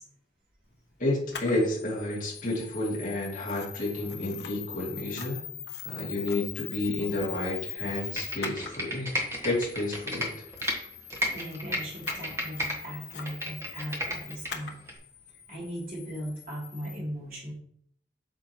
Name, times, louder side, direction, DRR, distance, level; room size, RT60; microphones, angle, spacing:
voice 1, 1.0-5.4 5.8-10.4, left 2 dB, 45° left, -4 dB, 2.6 m, -31 dB
Camera, 1.3-17.0, left 9 dB, 60° left, 1.0 m, -42 dB
Computer keyboard, 8.0-10.8 11.1-12.8 13.1-14.5 14.9-15.0, equal, 15° right, 1.4 m, -32 dB
voice 2, 11.2-14.7 15.5-17.5, equal, 50° right, -5 dB, 3.1 m, -38 dB
8.5 x 6.2 x 3.1 m, 0.64 s
head